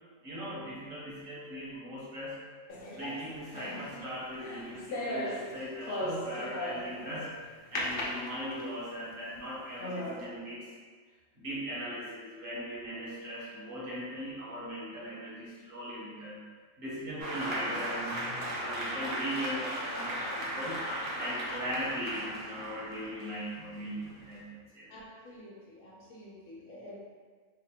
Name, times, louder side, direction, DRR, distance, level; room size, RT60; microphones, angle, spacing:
voice 1, 0.2-2.4 2.9-7.3 7.7-10.7 11.3-16.4 16.8-20.8 21.2-24.9, equal, 45° right, -7 dB, 1.0 m, -39 dB
sound 1, 2.7-7.1 7.8-8.9 9.4-9.5 9.8-10.3, left 1 dB, 60° left, 0.6 m, -37 dB
Applause, 17.2-24.4, equal, 70° right, 1.1 m, -37 dB
voice 2, 24.9-27.0, left 1 dB, 80° left, -5 dB, 1.1 m, -49 dB
4.0 x 2.4 x 2.8 m, 1.6 s
omnidirectional pair, 1.4 m